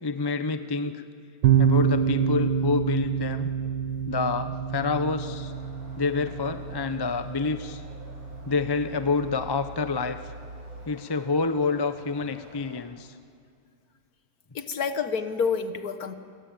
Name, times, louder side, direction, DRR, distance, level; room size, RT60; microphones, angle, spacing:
voice 1, 0.0-1.0 1.6-3.5 4.1-5.5 6.0-7.8 8.4-10.2 10.9-13.1, left 4 dB, 30° left, 10 dB, 0.4 m, -28 dB
sound 1, 1.4-10.9, right 7 dB, 85° right, 1.9 m, -28 dB
sound 2, 5.1-12.8, right 2 dB, 45° right, 6.9 m, -51 dB
voice 2, 14.5-16.1, left 6 dB, 55° left, 10 dB, 1.7 m, -28 dB
28.5 x 22.0 x 9.0 m, 2.2 s
omnidirectional pair, 2.1 m